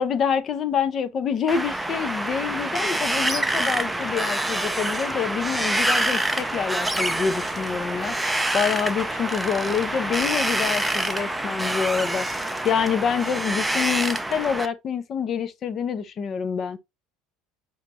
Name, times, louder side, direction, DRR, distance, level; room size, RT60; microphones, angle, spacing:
voice 1, 0.0-12.3 12.6-16.8, left 7 dB, 40° left, 0.7 m, -26 dB
Wind, 1.5-14.7, right 1 dB, 5° right, 0.5 m, -26 dB
6.5 x 3.1 x 2.5 m
supercardioid pair, 115°, 0 cm